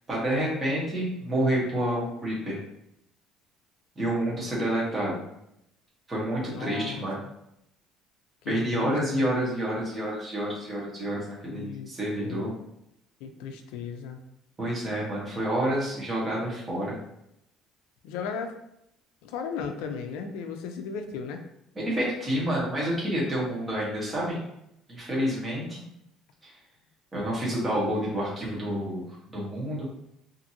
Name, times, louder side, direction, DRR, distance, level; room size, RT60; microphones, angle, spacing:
voice 1, 0.1-2.6 4.0-5.2 6.1-7.2 8.5-12.5 14.6-17.0 21.7-24.4 24.9-25.8 26.4-26.5 27.1-29.0 29.3-29.8, right 1 dB, 15° right, -6 dB, 0.9 m, -28 dB
voice 2, 6.4-7.1 8.4-9.2 11.5-12.5 13.2-14.2 18.0-18.5 19.2-21.4, left 6 dB, 90° left, 5 dB, 0.4 m, -36 dB
2.6 x 2.5 x 2.7 m, 0.80 s
cardioid pair, 165°, 0 cm